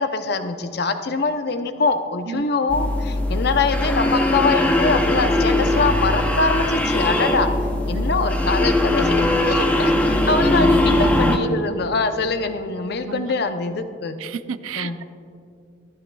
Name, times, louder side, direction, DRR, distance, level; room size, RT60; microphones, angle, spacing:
voice 1, 0.0-7.5 7.9-14.2 14.8-15.0, left 3 dB, 50° left, 8 dB, 0.6 m, -23 dB
sound 1, 2.7-11.4, left 1 dB, 5° left, 0.5 m, -20 dB
voice 2, 7.9-8.3 10.6-10.9 13.0-13.3 14.2-15.0, right 7 dB, 85° right, 14 dB, 0.4 m, -32 dB
14.0 x 12.5 x 2.3 m, 2.4 s
head